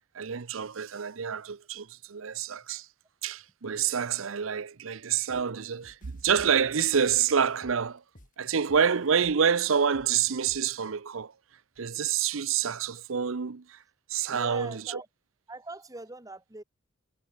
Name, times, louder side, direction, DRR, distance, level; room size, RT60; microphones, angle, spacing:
voice 1, 0.1-2.9 3.2-8.0 8.4-11.3 11.8-13.8 14.1-15.0, right 7 dB, 70° right, 0.7 m, -27 dB
sound 1, 5.3-5.5 5.8-8.3 8.7-10.8, equal, 40° left, 5.9 m, -55 dB
voice 2, 14.3-15.1 15.5-16.6, right 2 dB, 15° right, 2.0 m, -42 dB
head